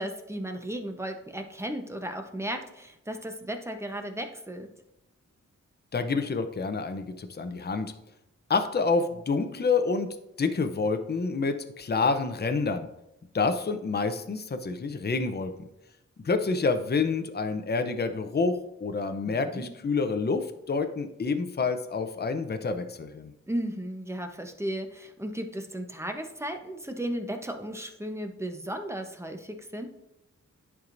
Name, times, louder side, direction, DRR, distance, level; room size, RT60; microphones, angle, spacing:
voice 1, 0.0-4.7 19.2-19.7 23.5-29.9, right 1 dB, 10° right, 5 dB, 0.9 m, -35 dB
voice 2, 5.9-7.9 8.5-10.1 10.4-12.9 13.3-15.5 16.2-23.3, left 4 dB, 35° left, 8 dB, 0.6 m, -28 dB
10.5 x 4.7 x 2.6 m, 0.86 s
cardioid pair, 70°, 30 cm